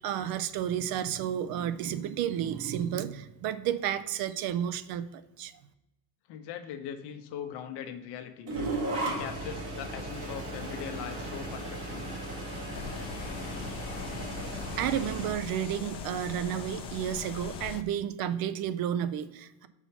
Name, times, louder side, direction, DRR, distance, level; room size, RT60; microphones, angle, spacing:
voice 1, 0.0-5.5 14.8-19.7, right 10 dB, 55° right, 12 dB, 0.5 m, -32 dB
voice 2, 6.3-8.5 9.0-12.1, left 8 dB, 65° left, 8 dB, 0.9 m, -40 dB
sound 1, 8.5-15.3, right 2 dB, 75° right, 2.1 m, -36 dB
sound 2, 10.1-17.8, left 3 dB, 15° left, 0.3 m, -47 dB
sound 3, 12.7-17.8, left 9 dB, 90° left, 0.6 m, -42 dB
5.6 x 4.5 x 5.7 m, 0.99 s
cardioid pair, 160°, 43 cm